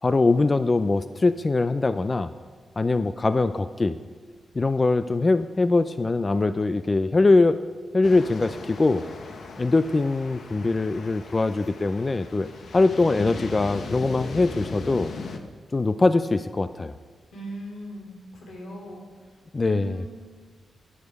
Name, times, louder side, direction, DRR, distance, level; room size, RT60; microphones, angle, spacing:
voice 1, 0.0-2.3 2.8-4.0 4.6-7.6 7.9-9.0 9.6-12.5 12.7-15.1 15.7-16.9 19.5-20.0, left 3 dB, 25° left, 12 dB, 0.3 m, -22 dB
sound 1, 8.0-15.4, left 4 dB, 60° left, 1.0 m, -38 dB
voice 2, 17.3-19.0 19.6-20.1, right 1 dB, 85° left, -1 dB, 3.4 m, -39 dB
15.0 x 10.0 x 4.7 m, 1.5 s
wide cardioid pair, 135°, 0 cm